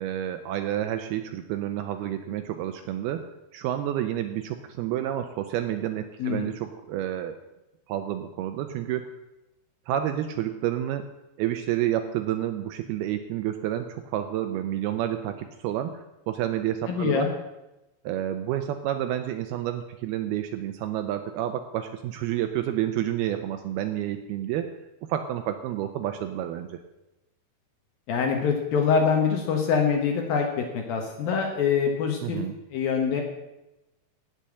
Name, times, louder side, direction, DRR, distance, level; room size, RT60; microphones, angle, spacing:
voice 1, 0.0-3.2 3.5-7.4 7.9-9.1 9.9-11.0 11.4-17.3 18.0-24.7 25.1-26.8 32.2-32.5, right 11 dB, 80° right, 8 dB, 2.4 m, -29 dB
voice 2, 16.9-17.3 28.1-32.4 32.7-33.2, left 6 dB, 65° left, 3 dB, 2.7 m, -24 dB
17.0 x 5.6 x 7.5 m, 0.97 s
omnidirectional pair, 5.0 m